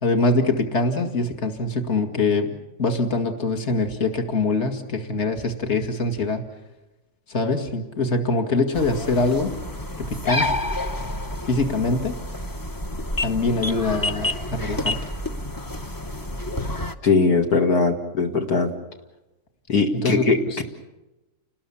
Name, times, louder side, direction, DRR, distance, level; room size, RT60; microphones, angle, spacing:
voice 1, 0.0-6.4 7.3-9.5 10.0-10.6 11.4-12.2 13.2-15.0 20.0-20.3, left 3 dB, 45° left, 5 dB, 2.5 m, -23 dB
sound 1, 8.7-16.9, left 1 dB, 20° left, 0.7 m, -29 dB
voice 2, 17.0-18.7 19.7-20.6, left 4 dB, 65° left, 2 dB, 2.6 m, -20 dB
29.5 x 20.0 x 7.2 m, 1.0 s
omnidirectional pair, 1.7 m